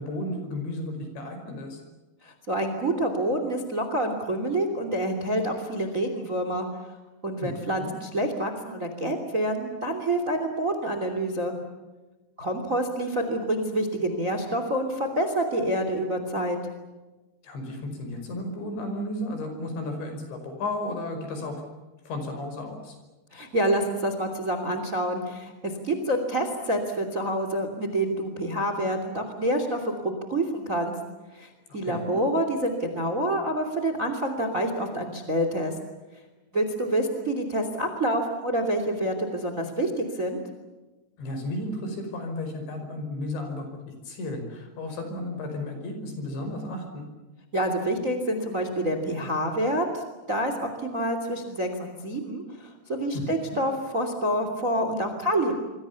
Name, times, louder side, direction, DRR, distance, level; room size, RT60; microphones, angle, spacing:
voice 1, 0.0-1.8 7.4-7.5 7.8-7.9 17.4-21.6 22.1-23.0 31.8-32.2 41.2-43.7 44.1-47.0 53.1-53.3, left 1 dB, 70° left, 6 dB, 7.4 m, -33 dB
voice 2, 2.2-6.7 7.2-11.5 12.4-16.6 23.3-30.9 31.3-35.7 36.5-40.4 47.5-50.0 50.3-55.5, right 1 dB, 20° right, 7 dB, 2.5 m, -27 dB
27.0 x 24.5 x 7.1 m, 1.2 s
omnidirectional pair, 5.4 m